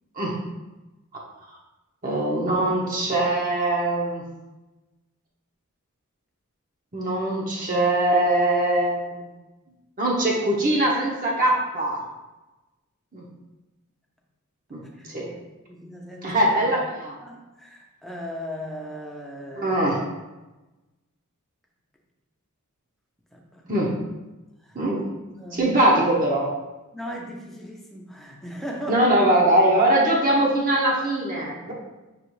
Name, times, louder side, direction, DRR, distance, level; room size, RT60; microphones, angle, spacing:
voice 1, 2.0-4.2 6.9-9.0 10.0-12.0 13.1-13.2 14.7-14.8 15.1-15.3 16.2-17.1 19.6-20.1 23.7-23.9 24.7-25.0 25.5-26.5 28.9-31.7, right 1 dB, 40° right, -3 dB, 0.8 m, -22 dB
voice 2, 15.7-16.4 17.2-19.7 23.3-23.6 24.6-24.8 25.4-25.8 26.9-29.4, equal, ahead, -2 dB, 0.6 m, -37 dB
5.7 x 3.0 x 3.1 m, 1.1 s
head